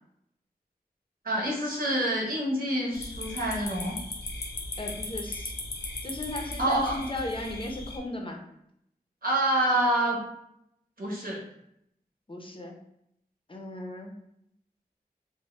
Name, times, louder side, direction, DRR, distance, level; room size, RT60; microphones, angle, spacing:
voice 1, 1.2-4.0 6.5-7.0 9.2-10.2 11.0-11.4, right 1 dB, 65° right, -4 dB, 0.9 m, -27 dB
sound 1, 2.9-8.0, left 2 dB, 90° left, 0.5 m, -37 dB
voice 2, 4.8-5.5 6.0-8.4 12.3-12.8 13.5-14.1, left 1 dB, 30° left, 2 dB, 0.5 m, -36 dB
3.0 x 2.0 x 3.1 m, 0.77 s
wide cardioid pair, 55°, 16 cm